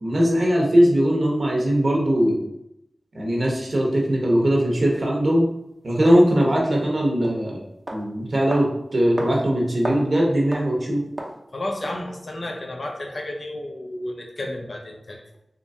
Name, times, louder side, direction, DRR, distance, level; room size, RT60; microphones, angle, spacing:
voice 1, 0.0-2.4 3.1-5.5 5.8-7.6 7.9-8.7 8.9-11.0, equal, 60° right, -2 dB, 1.0 m, -20 dB
sound 1, 4.9-5.0 6.0-6.1 6.6-6.8 7.2-7.4 7.9-8.0 8.5-8.7 9.2-9.3 9.6-10.1 10.5-10.7 11.2-11.4 11.8-12.0, right 1 dB, 25° right, 0.7 m, -32 dB
voice 2, 11.5-15.2, left 1 dB, 55° left, 2 dB, 0.6 m, -32 dB
3.8 x 3.0 x 2.7 m, 0.81 s
wide cardioid pair, 55°, 0 cm